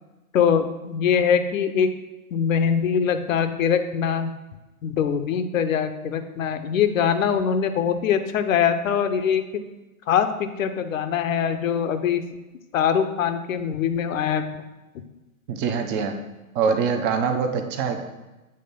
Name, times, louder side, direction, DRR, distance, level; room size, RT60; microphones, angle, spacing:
voice 1, 0.3-1.9 2.3-4.3 4.8-9.6 10.1-12.2 12.7-14.5, left 7 dB, 60° left, 9 dB, 0.7 m, -23 dB
voice 2, 15.5-16.2 16.5-18.0, right 6 dB, 25° right, 6 dB, 0.7 m, -24 dB
7.7 x 3.3 x 5.3 m, 1.1 s
figure-of-eight pair, 110°, 44 cm